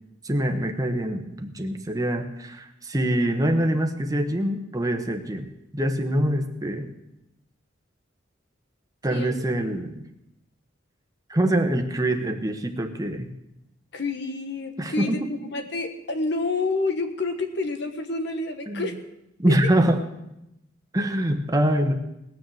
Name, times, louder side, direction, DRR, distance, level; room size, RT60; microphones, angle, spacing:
voice 1, 0.2-6.9 9.0-10.1 11.3-13.3 14.8-15.2 18.7-18.9 19.4-20.0 20.9-21.9, right 1 dB, 20° right, 5 dB, 1.2 m, -24 dB
voice 2, 9.1-9.4 13.9-19.0 19.5-19.7, left 3 dB, 65° left, 6 dB, 1.5 m, -29 dB
19.0 x 6.6 x 7.7 m, 0.87 s
head